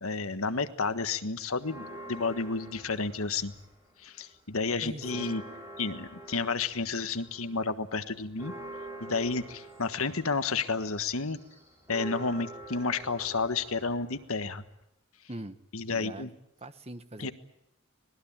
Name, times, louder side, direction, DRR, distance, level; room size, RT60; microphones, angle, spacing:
voice 1, 0.0-3.5 4.0-5.4 5.8-8.5 9.0-11.4 11.9-14.6 15.7-16.3 17.2-17.3, left 4 dB, 75° left, 10 dB, 1.5 m, -31 dB
Church bell, 1.6-4.0 4.3-4.4 4.8-14.8, right 2 dB, 10° right, 5.4 m, -46 dB
voice 2, 4.8-5.4 15.3-15.6 15.9-16.3 16.6-17.3, right 1 dB, 30° right, 10 dB, 1.3 m, -42 dB
26.0 x 20.0 x 8.8 m, 0.81 s
head